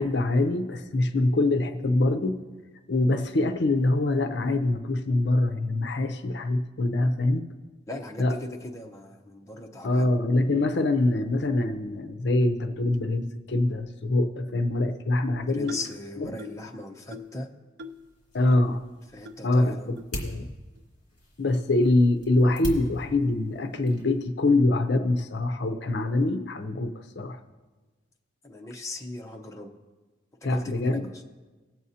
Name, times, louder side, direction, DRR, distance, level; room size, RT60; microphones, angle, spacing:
voice 1, 0.0-2.4 2.9-7.5 8.2-8.3 9.8-15.8 16.2-16.4 18.3-18.8 19.4-20.5 21.4-27.4 30.4-31.1, left 2 dB, 60° left, 7 dB, 0.6 m, -24 dB
voice 2, 7.9-10.1 15.4-17.5 19.1-19.9 28.4-29.8 30.4-31.2, left 2 dB, 15° left, 1 dB, 0.7 m, -38 dB
sound 1, 15.7-16.0 16.4-16.7 17.1-17.4 17.8-18.1 18.5-18.6 19.2-19.4 20.0-20.1 20.8-20.9 21.5-21.7, left 3 dB, 65° right, 0.5 m, -42 dB
sound 2, 17.9-24.3, equal, 40° left, 2.5 m, -41 dB
19.0 x 7.7 x 2.8 m, 1.3 s
head